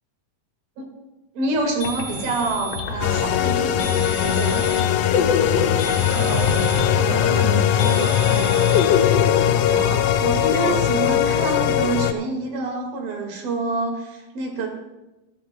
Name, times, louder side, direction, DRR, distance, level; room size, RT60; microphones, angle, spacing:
voice 1, 1.4-4.7 9.7-14.7, right 2 dB, 80° right, 1 dB, 3.8 m, -27 dB
sound 1, 1.6-1.7 1.8-12.4, left 6 dB, 60° left, 1.8 m, -27 dB
sound 2, 1.8-2.9 3.8-4.9 5.8-6.9 7.8-8.8, equal, 35° left, 2.7 m, -34 dB
sound 3, 3.0-12.1, left 11 dB, 85° left, 2.4 m, -20 dB
voice 2, 6.1-6.6 7.0-9.0 10.7-10.9, right 5 dB, 65° right, 3 dB, 2.0 m, -30 dB
20.0 x 12.5 x 2.2 m, 1.0 s
omnidirectional pair, 4.1 m